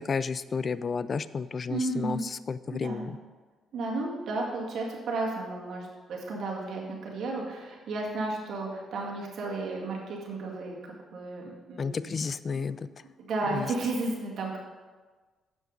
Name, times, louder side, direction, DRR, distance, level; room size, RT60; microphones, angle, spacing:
voice 1, 0.1-2.2 2.5-3.2 11.8-12.8 13.5-13.6, left 5 dB, 40° left, 16 dB, 0.3 m, -31 dB
voice 2, 1.7-2.3 2.7-3.1 3.7-12.1 12.5-12.8 13.2-14.6, right 2 dB, 65° right, -2 dB, 2.0 m, -33 dB
7.3 x 6.4 x 5.3 m, 1.4 s
cardioid pair, 90°, 0 cm